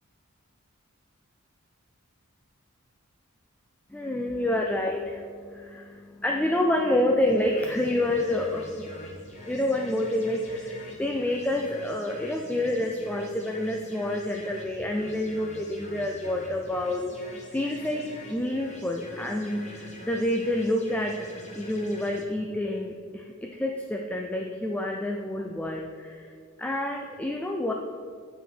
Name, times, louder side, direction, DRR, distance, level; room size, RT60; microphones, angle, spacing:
voice 1, 3.9-21.3 21.5-26.3 26.6-27.7, left 1 dB, 5° left, 2 dB, 0.3 m, -28 dB
sound 1, 7.2-22.2, left 1 dB, 30° left, 1.2 m, -45 dB
9.2 x 5.0 x 4.4 m, 2.2 s
head